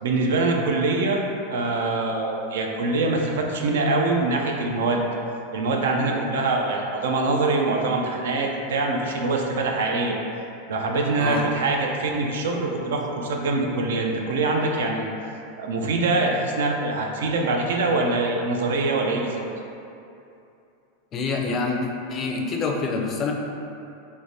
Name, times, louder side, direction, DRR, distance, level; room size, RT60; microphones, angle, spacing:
voice 1, 0.0-1.2 1.5-5.0 5.5-10.2 10.7-15.1 15.6-19.4, right 3 dB, 80° right, 1 dB, 0.3 m, -24 dB
voice 2, 21.1-21.8 22.1-23.3, left 4 dB, 35° left, 0 dB, 0.4 m, -26 dB
3.1 x 2.1 x 2.6 m, 2.7 s
hypercardioid pair, 115°, 0 cm